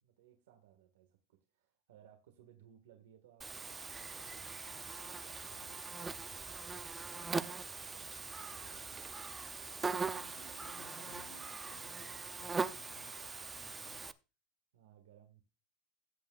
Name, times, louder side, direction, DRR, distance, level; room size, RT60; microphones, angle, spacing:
voice 1, 0.0-7.5 7.8-9.7 13.2-13.3 14.7-15.4, right 10 dB, 85° right, 4 dB, 1.6 m, -63 dB
Buzz, 3.4-14.1, right 4 dB, 15° right, 0.6 m, -41 dB
voice 2, 10.1-14.0, left 5 dB, 85° left, 4 dB, 3.2 m, -60 dB
16.5 x 7.6 x 2.4 m, 0.30 s
supercardioid pair, 115°, 0 cm